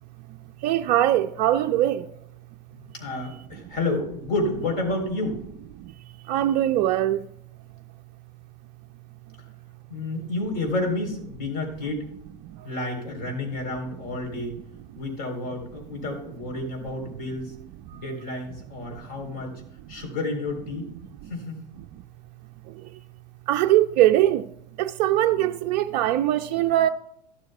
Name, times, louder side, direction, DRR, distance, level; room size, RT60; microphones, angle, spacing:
voice 1, 0.6-2.1 6.3-7.3 23.5-24.5 24.8-26.9, right 13 dB, 40° right, 0.4 m, -21 dB
voice 2, 2.7-5.4 9.9-12.0 12.6-14.6 15.0-17.5 18.0-19.6 19.9-20.9 21.3-21.6, left 2 dB, 45° left, 3.9 m, -30 dB
14.0 x 12.5 x 2.3 m
figure-of-eight pair, 85°, 21 cm